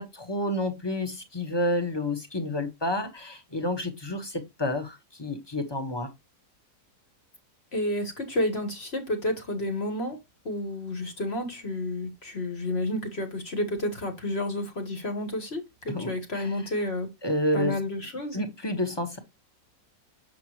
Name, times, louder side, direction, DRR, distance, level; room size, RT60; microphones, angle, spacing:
voice 1, 0.0-6.1 15.9-16.5 17.2-17.7 18.3-19.2, left 1 dB, 15° left, 1.2 m, -29 dB
voice 2, 7.7-10.2 10.4-17.1 17.5-18.4, left 1 dB, 40° left, 1.6 m, -30 dB
7.4 x 5.9 x 3.0 m
omnidirectional pair, 1.8 m